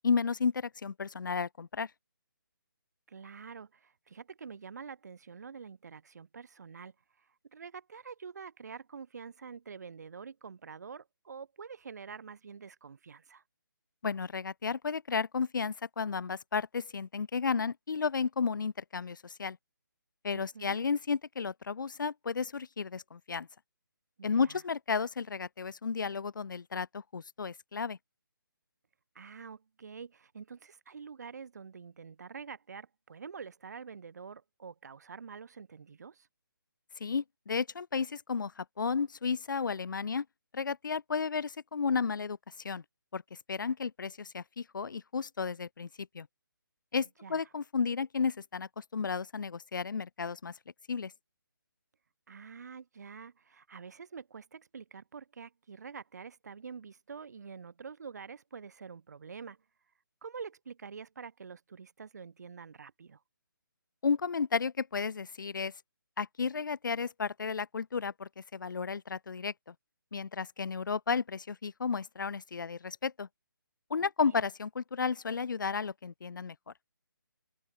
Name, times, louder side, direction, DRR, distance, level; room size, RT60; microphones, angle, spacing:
voice 1, 0.0-1.9 14.0-19.6 20.2-23.5 24.2-28.0 37.0-40.2 40.5-42.4 42.6-42.8 43.1-45.9 46.1-46.3 46.9-50.5 50.9-51.1 64.0-65.7 66.2-69.5 70.1-73.3 73.9-76.5, left 5 dB, 65° left, 0.8 m, -33 dB
voice 2, 3.1-6.9 7.5-13.4 20.3-20.8 24.4-24.6 29.1-36.3 47.2-47.4 52.3-59.6 60.2-63.2 74.2-74.4, right 6 dB, 50° right, 4.0 m, -47 dB
open air
hypercardioid pair, 170°, 12 cm